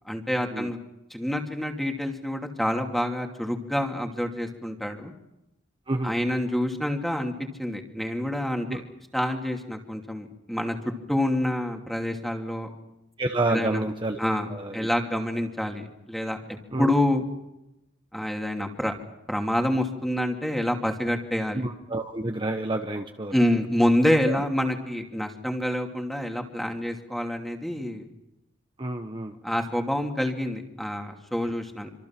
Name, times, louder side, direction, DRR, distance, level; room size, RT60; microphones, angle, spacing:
voice 1, 0.0-0.8 1.1-5.1 6.0-7.3 7.6-8.8 9.1-10.8 11.1-12.7 13.5-13.8 14.2-16.4 16.8-17.2 18.1-18.9 19.3-21.6 23.3-28.1 29.4-31.9, left 1 dB, ahead, 3 dB, 2.6 m, -27 dB
voice 2, 13.2-14.2 14.5-14.9 16.7-16.9 21.5-23.4 24.3-24.4 28.8-29.3 31.4-31.5, right 2 dB, 25° right, 4 dB, 1.2 m, -29 dB
27.0 x 26.0 x 6.0 m, 0.91 s
head